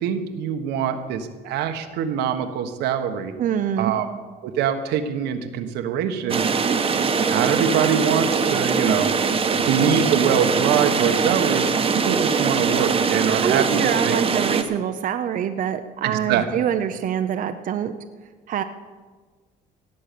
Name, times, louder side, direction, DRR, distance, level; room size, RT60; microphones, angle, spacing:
voice 1, 0.0-3.3 3.8-4.0 4.4-6.4 7.2-9.1 9.6-11.7 12.1-14.2 16.0-16.6, right 8 dB, 85° right, 6 dB, 1.3 m, -24 dB
voice 2, 3.4-4.0 13.4-17.9 18.5-18.6, right 9 dB, 55° right, 7 dB, 0.7 m, -25 dB
sound 1, 6.3-14.6, right 5 dB, 35° right, 1.2 m, -22 dB
17.5 x 7.9 x 6.9 m, 1.4 s
cardioid pair, 110°, 17 cm